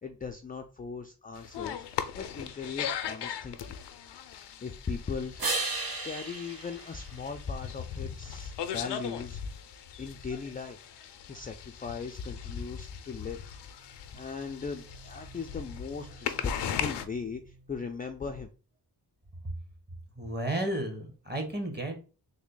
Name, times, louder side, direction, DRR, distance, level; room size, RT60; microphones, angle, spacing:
voice 1, 0.0-3.8 4.6-5.5 6.0-9.4 10.0-10.8 11.3-13.5 14.2-18.5, left 5 dB, 25° left, 4 dB, 0.3 m, -38 dB
sound 1, 1.3-17.0, left 8 dB, 85° left, 0.5 m, -39 dB
sound 2, 5.4-8.0 13.7-17.7, right 3 dB, 60° right, 1.1 m, -39 dB
voice 2, 20.2-22.0, right 1 dB, 25° right, 4 dB, 1.1 m, -33 dB
3.5 x 2.1 x 3.7 m, 0.35 s
cardioid pair, 75°, 40 cm